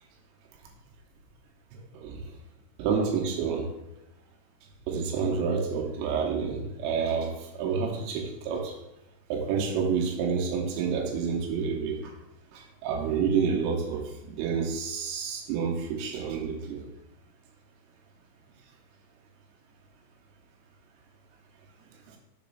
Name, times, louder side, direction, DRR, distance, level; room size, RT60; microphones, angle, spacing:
voice 1, 2.8-3.7 4.9-8.7 9.3-12.1 12.5-16.8, right 6 dB, 90° right, 0 dB, 3.7 m, -29 dB
7.9 x 3.1 x 5.5 m, 0.92 s
omnidirectional pair, 5.7 m